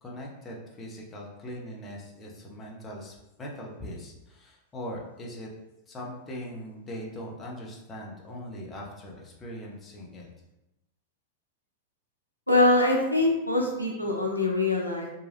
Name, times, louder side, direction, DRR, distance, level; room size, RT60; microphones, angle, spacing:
voice 1, 0.0-5.5 5.9-10.3, equal, 20° left, -3 dB, 0.7 m, -40 dB
voice 2, 12.5-15.1, left 2 dB, 90° left, -2 dB, 0.5 m, -23 dB
3.0 x 2.3 x 2.9 m, 0.92 s
figure-of-eight pair, 90°, 0 cm